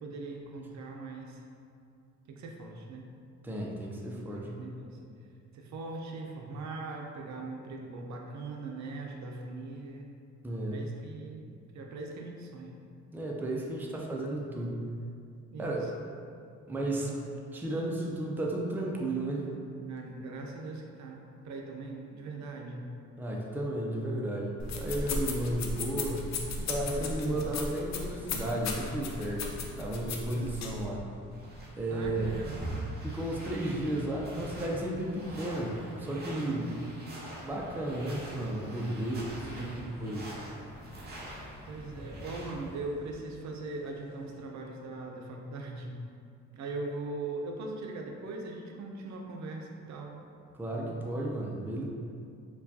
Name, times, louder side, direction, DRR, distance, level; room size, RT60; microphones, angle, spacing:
voice 1, 0.0-1.4 2.3-3.0 4.3-5.1 5.5-10.1 10.7-12.8 15.5-16.0 16.9-17.2 19.9-22.9 27.0-27.4 30.3-30.6 31.9-32.9 36.3-36.7 38.8-40.0 41.7-46.0 46.5-50.1, right 3 dB, 70° right, 1 dB, 0.5 m, -41 dB
voice 2, 3.4-4.5 10.4-10.8 13.1-14.9 15.6-15.9 16.7-17.1 17.5-19.5 23.2-26.3 26.6-29.5 29.8-31.0 31.8-32.3 33.0-36.7 37.4-40.3 42.0-42.1 50.5-51.9, right 1 dB, 5° right, -2 dB, 0.4 m, -33 dB
sound 1, 24.6-30.9, left 3 dB, 60° left, 0.5 m, -36 dB
sound 2, 29.1-44.4, left 1 dB, 25° left, 1.4 m, -52 dB
sound 3, 31.3-42.8, right 1 dB, 35° right, 0.8 m, -44 dB
4.5 x 2.3 x 2.7 m, 2.4 s
cardioid pair, 90°, 30 cm